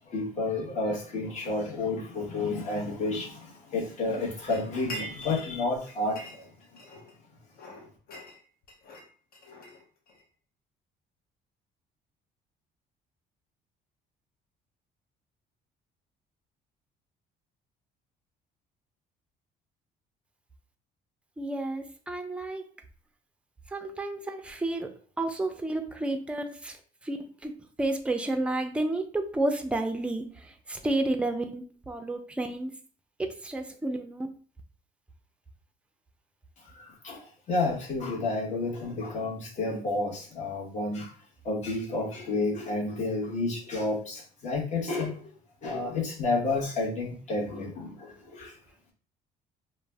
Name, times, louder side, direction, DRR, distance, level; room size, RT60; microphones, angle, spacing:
voice 1, 0.1-6.4 36.7-41.1 41.4-45.3 45.6-48.6, left 3 dB, 45° left, -3 dB, 1.0 m, -31 dB
sound 1, 4.5-5.6 5.9-7.2 7.5-10.2, equal, 60° left, 0.6 m, -44 dB
voice 2, 21.4-22.7 23.7-27.5 27.8-32.7 33.2-34.3, right 2 dB, 5° right, 5 dB, 0.4 m, -31 dB
2.4 x 2.0 x 3.3 m, 0.42 s
cardioid pair, 110°, 17 cm